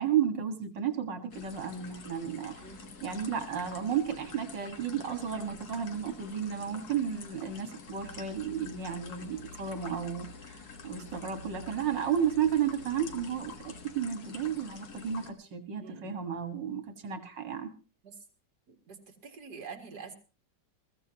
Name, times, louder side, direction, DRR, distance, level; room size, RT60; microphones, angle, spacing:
voice 1, 0.0-2.7 3.0-17.7, right 8 dB, 85° right, 7 dB, 2.4 m, -33 dB
sound 1, 1.3-15.3, left 5 dB, 60° left, 2.0 m, -48 dB
sound 2, 7.9-13.8, left 2 dB, 75° left, 4.0 m, -51 dB
voice 2, 15.8-16.2 18.0-18.1 18.7-19.0 19.2-20.2, right 5 dB, 65° right, 4 dB, 2.6 m, -46 dB
21.0 x 15.0 x 2.9 m, 0.34 s
omnidirectional pair, 1.9 m